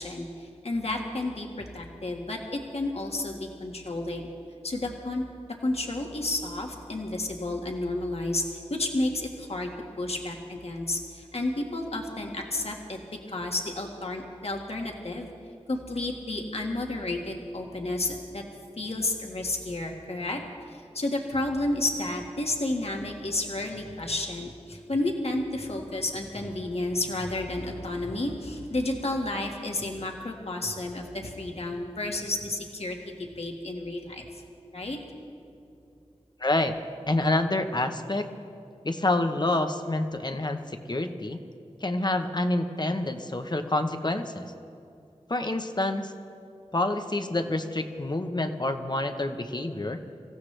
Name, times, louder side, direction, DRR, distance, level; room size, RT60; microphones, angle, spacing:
voice 1, 0.0-4.3 4.6-5.2 5.6-9.7 10.0-13.0 13.3-15.3 15.7-18.4 18.8-20.4 20.7-34.2 34.7-35.0, left 2 dB, 60° left, 1 dB, 1.7 m, -31 dB
voice 2, 36.4-36.8 37.1-38.3 38.8-41.4 41.8-44.5 45.3-46.1 46.7-50.0, left 2 dB, 40° left, 7 dB, 1.0 m, -27 dB
25.5 x 15.0 x 3.3 m, 2.5 s
wide cardioid pair, 55°, 12 cm